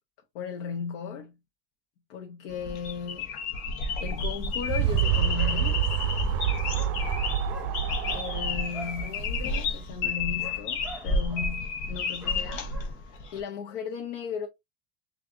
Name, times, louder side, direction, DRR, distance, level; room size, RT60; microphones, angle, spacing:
voice 1, 0.3-1.4 2.1-3.3 4.0-5.9 8.1-12.7 13.3-14.5, left 6 dB, 85° left, 0.9 m, -36 dB
sound 1, 2.5-13.4, left 4 dB, 55° left, 0.9 m, -31 dB
sound 2, 4.2-9.8, right 10 dB, 80° right, 0.5 m, -28 dB
Dog, 5.0-5.1 5.3-6.1 6.7-13.4, right 1 dB, ahead, 0.6 m, -47 dB
6.0 x 2.5 x 2.6 m
cardioid pair, 150°, 35 cm